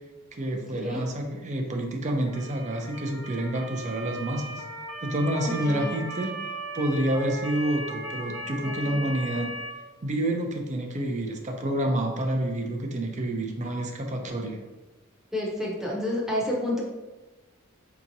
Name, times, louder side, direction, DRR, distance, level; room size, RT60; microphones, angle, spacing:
voice 1, 0.3-4.6 5.0-6.4 6.7-9.5 10.0-14.6, right 1 dB, 35° right, 3 dB, 0.5 m, -28 dB
Motor vehicle (road) / Siren, 2.2-9.7, right 1 dB, 65° right, 0.9 m, -37 dB
voice 2, 5.4-5.9 8.8-9.0 15.3-16.8, left 1 dB, ahead, -4 dB, 0.8 m, -29 dB
4.7 x 2.9 x 2.6 m, 1.1 s
head